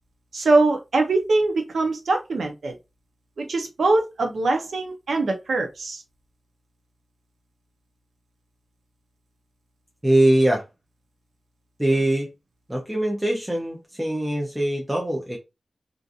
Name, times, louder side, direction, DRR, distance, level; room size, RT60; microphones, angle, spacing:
voice 1, 0.3-2.7 3.4-6.0, right 2 dB, 85° right, 4 dB, 0.5 m, -22 dB
voice 2, 10.0-10.6 11.8-12.3 12.7-15.4, right 1 dB, 10° right, -1 dB, 0.5 m, -22 dB
2.5 x 2.3 x 2.5 m, 0.24 s
wide cardioid pair, 125°, 0 cm